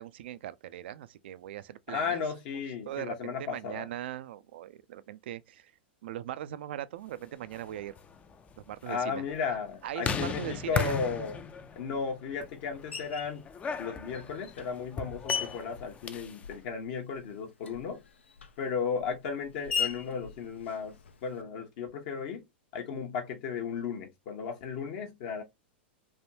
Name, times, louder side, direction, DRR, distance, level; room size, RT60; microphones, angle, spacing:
voice 1, 0.0-2.2 2.5-5.7 6.0-7.9 8.7-9.2 9.8-11.0, right 12 dB, 70° right, 0.4 m, -40 dB
voice 2, 1.9-3.9 8.9-11.4 11.8-13.4 13.8-18.0 18.6-20.9 21.2-22.4 22.7-25.4, left 5 dB, 55° left, 0.9 m, -35 dB
sound 1, 7.4-16.5, left 6 dB, 20° left, 0.4 m, -38 dB
Screech, 12.9-13.4 14.1-16.8 17.1-21.4, left 6 dB, 90° left, 0.5 m, -38 dB
3.4 x 2.2 x 2.7 m
hypercardioid pair, 110°, 6 cm